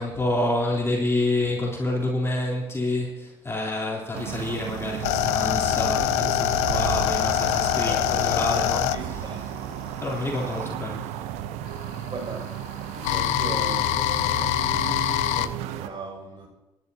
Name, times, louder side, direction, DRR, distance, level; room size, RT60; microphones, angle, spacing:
voice 1, 0.0-8.9 10.0-11.1, left 2 dB, 20° left, 3.4 m, -28 dB
sound 1, 4.1-15.9, right 11 dB, 75° right, 0.7 m, -34 dB
sound 2, 4.5-10.7 11.7-15.5, left 14 dB, 75° left, 0.4 m, -25 dB
voice 2, 7.8-8.3 8.9-9.7 12.1-14.8 15.2-16.5, right 3 dB, 45° right, 6.2 m, -38 dB
27.5 x 11.0 x 2.8 m
hypercardioid pair, 50°, 11 cm